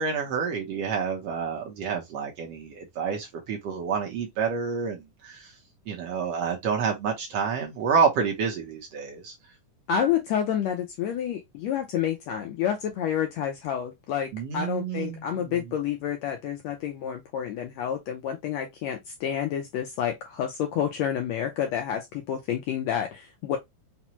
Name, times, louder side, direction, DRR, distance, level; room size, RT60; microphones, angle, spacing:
voice 1, 0.0-5.4 5.9-9.3 14.3-15.2, right 6 dB, 75° right, 1.5 m, -28 dB
voice 2, 9.9-23.6, left 9 dB, 85° left, 1.6 m, -29 dB
5.7 x 2.1 x 2.9 m
omnidirectional pair, 3.8 m